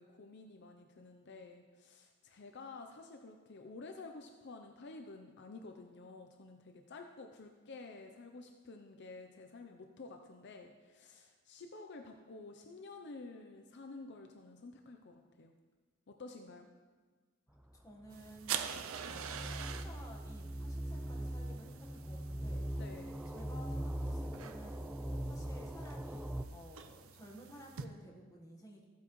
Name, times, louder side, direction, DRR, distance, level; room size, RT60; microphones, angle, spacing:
voice 1, 0.0-15.5 16.1-16.7 22.8-23.2, left 3 dB, 55° left, 5 dB, 0.6 m, -51 dB
sound 1, 17.6-26.4, right 1 dB, 5° right, 0.3 m, -41 dB
voice 2, 17.7-18.6 19.0-22.6 23.3-24.8 25.2-28.8, equal, 15° left, -1 dB, 1.3 m, -54 dB
sound 2, 18.1-27.8, right 8 dB, 75° right, 0.5 m, -46 dB
14.5 x 8.3 x 3.1 m, 1.4 s
head